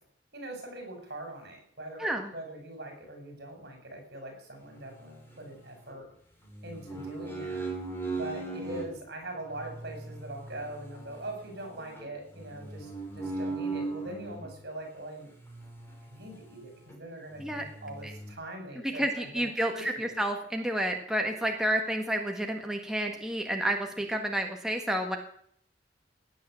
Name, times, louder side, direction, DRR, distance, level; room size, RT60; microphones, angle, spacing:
voice 1, 0.3-6.1 6.6-7.7 8.2-15.3 16.0-20.2, right 1 dB, 60° right, 4 dB, 5.8 m, -42 dB
voice 2, 2.0-2.3 17.4-17.6 18.0-18.1 18.9-25.2, right 1 dB, 5° right, 2 dB, 1.5 m, -30 dB
sound 1, 4.7-6.0 6.5-8.9 9.5-14.5 15.4-16.6 16.9-17.0 17.3-18.3, right 3 dB, 15° left, 3.9 m, -39 dB
17.0 x 9.5 x 7.6 m, 0.65 s
head